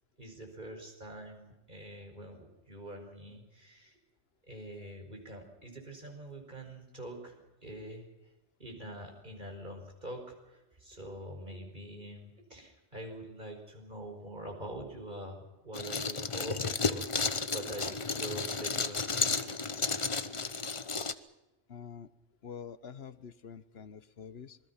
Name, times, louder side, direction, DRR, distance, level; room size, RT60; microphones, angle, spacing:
voice 1, 0.2-4.0 4.5-7.3 7.6-8.1 8.6-19.7, right 1 dB, 40° right, 2 dB, 5.2 m, -45 dB
sound 1, 15.7-21.1, left 4 dB, 30° left, 0.8 m, -33 dB
voice 2, 21.7-22.1 22.4-24.6, left 7 dB, 60° left, 14 dB, 1.2 m, -46 dB
27.0 x 21.5 x 5.8 m, 1.0 s
omnidirectional pair, 1.2 m